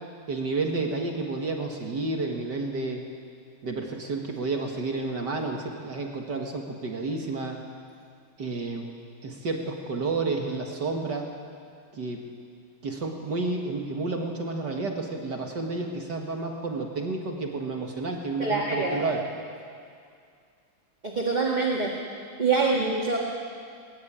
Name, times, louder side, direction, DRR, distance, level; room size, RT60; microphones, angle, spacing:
voice 1, 0.3-3.0 3.6-7.6 8.4-8.9 9.2-11.3 11.9-12.2 12.8-19.2, right 3 dB, 55° right, 2 dB, 2.3 m, -30 dB
voice 2, 18.4-19.1 21.0-21.9 22.4-23.2, right 4 dB, 20° right, -1 dB, 1.7 m, -25 dB
21.0 x 19.5 x 8.8 m, 2.3 s
omnidirectional pair, 2.3 m